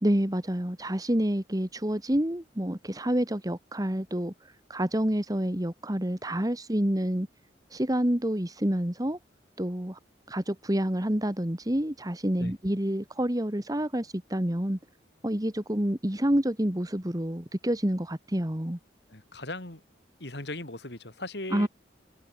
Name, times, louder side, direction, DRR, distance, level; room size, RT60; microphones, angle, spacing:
voice 1, 0.0-4.3 4.7-7.3 7.7-9.2 9.6-10.0 10.3-14.8 15.2-18.8 21.5-21.7, equal, 20° right, 1.8 m, -28 dB
voice 2, 19.1-19.8 20.2-21.7, left 2 dB, 65° left, 4.3 m, -38 dB
head